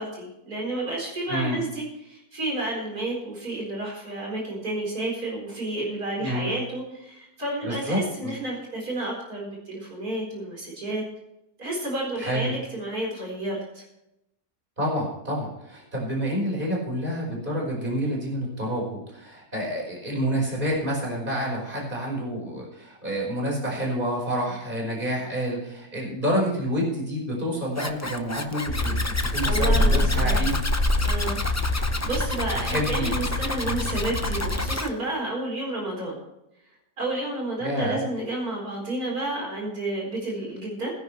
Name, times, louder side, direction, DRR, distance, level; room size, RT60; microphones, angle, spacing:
voice 1, 0.0-11.0 11.6-13.8 29.4-30.4 31.0-31.4 31.8-36.2 37.0-40.9, right 2 dB, 75° right, -2 dB, 4.9 m, -31 dB
voice 2, 1.3-1.6 6.2-6.6 7.6-8.3 12.2-12.5 14.8-30.6 32.6-33.1 37.6-38.0, equal, 35° right, -3 dB, 5.2 m, -28 dB
Zipper (clothing), 27.7-34.9, left 2 dB, 15° left, 0.5 m, -31 dB
sound 1, 28.7-34.8, left 1 dB, 60° left, 4.1 m, -25 dB
20.0 x 10.5 x 3.2 m, 0.87 s
omnidirectional pair, 1.6 m